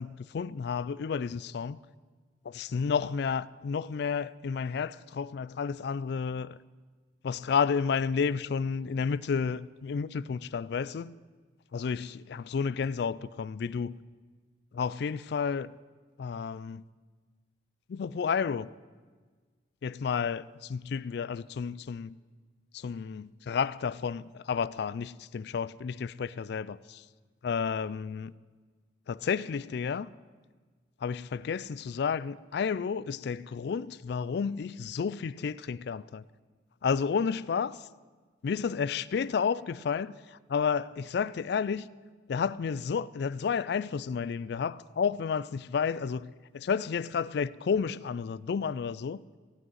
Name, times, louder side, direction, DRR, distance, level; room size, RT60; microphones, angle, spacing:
voice 1, 0.0-1.8 2.5-6.6 7.2-11.1 11.7-14.0 14.7-15.7 16.2-16.8 17.9-18.7 19.8-22.2 22.7-27.0 27.4-28.3 29.1-30.1 31.0-36.2 36.8-37.8 38.4-41.9 42.3-49.2, left 6 dB, 65° left, 0.3 m, -31 dB
17.0 x 6.3 x 9.0 m
head